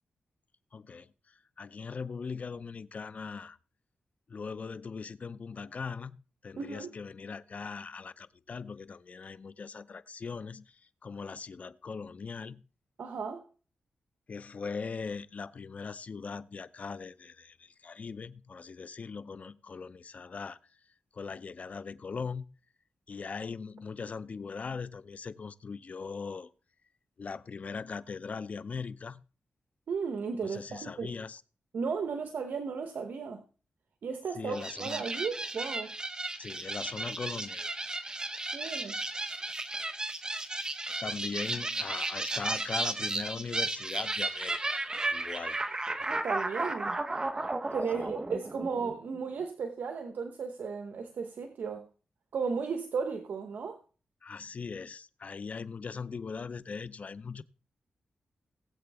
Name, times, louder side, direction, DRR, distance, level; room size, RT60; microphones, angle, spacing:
voice 1, 0.7-3.6 4.3-12.6 14.3-20.6 21.1-22.5 23.1-26.5 27.2-29.2 30.4-31.4 34.3-35.0 36.4-37.7 41.0-44.8 45.1-45.6 47.9-48.1 54.2-57.4, left 5 dB, 50° left, 0.6 m, -40 dB
voice 2, 6.6-6.9 13.0-13.5 29.9-31.1 31.7-33.4 34.0-35.9 38.5-39.0 46.0-47.0 47.7-51.8 52.3-53.8, right 5 dB, 75° right, 1.0 m, -35 dB
sound 1, 34.5-49.2, right 2 dB, 25° right, 1.0 m, -34 dB
19.0 x 7.9 x 3.5 m
cardioid pair, 90°, 3 cm